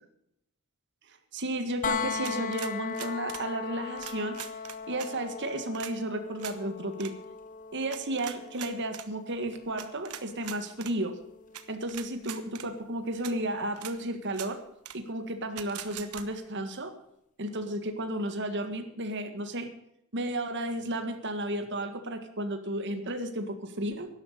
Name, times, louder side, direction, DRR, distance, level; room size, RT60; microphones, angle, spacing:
voice 1, 1.3-4.4 4.9-7.1 7.7-11.2 11.7-14.6 15.1-16.9 17.4-19.7 20.1-24.1, right 1 dB, 55° right, 7 dB, 1.8 m, -33 dB
sound 1, 1.8-13.6 15.6-15.7, left 6 dB, 35° left, 0.8 m, -39 dB
sound 2, 2.2-3.5 4.0-5.1 5.7-5.9 6.4-6.6 6.9-7.1 7.9-9.1 9.8-10.9 11.5-11.6 11.9-12.7 13.2-13.3 13.8-13.9 14.3-14.5 14.8-15.0 15.6-16.2, right 10 dB, 85° right, 1.2 m, -41 dB
12.0 x 12.0 x 6.6 m, 0.76 s
head